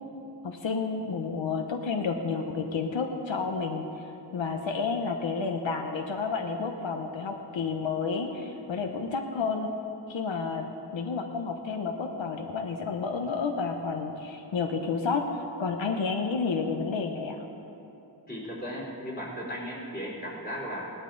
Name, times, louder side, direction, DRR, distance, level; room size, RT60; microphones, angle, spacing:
voice 1, 0.4-4.0 4.3-9.7 10.1-17.4, left 4 dB, 90° left, 4 dB, 0.9 m, -30 dB
voice 2, 18.3-20.9, equal, 20° left, -5 dB, 3.5 m, -36 dB
17.5 x 12.0 x 3.9 m, 2.9 s
wide cardioid pair, 95°, 44 cm